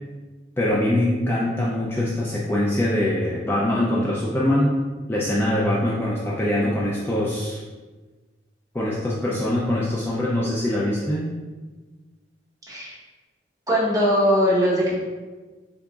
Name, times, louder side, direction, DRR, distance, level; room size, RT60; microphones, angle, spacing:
voice 1, 0.6-4.7 5.1-7.6 8.7-11.3, left 1 dB, 15° left, -6 dB, 0.4 m, -23 dB
voice 2, 13.7-14.9, equal, 20° right, -7 dB, 1.0 m, -20 dB
3.8 x 3.5 x 2.4 m, 1.3 s
head